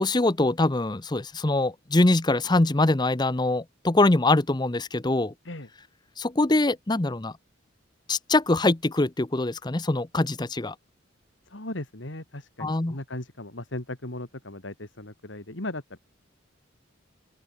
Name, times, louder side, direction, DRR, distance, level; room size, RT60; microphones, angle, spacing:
voice 1, 0.0-5.3 6.2-7.3 8.1-10.7 12.6-13.0, left 2 dB, 20° left, 0.8 m, -23 dB
voice 2, 11.5-16.0, left 1 dB, 65° left, 3.1 m, -37 dB
open air
head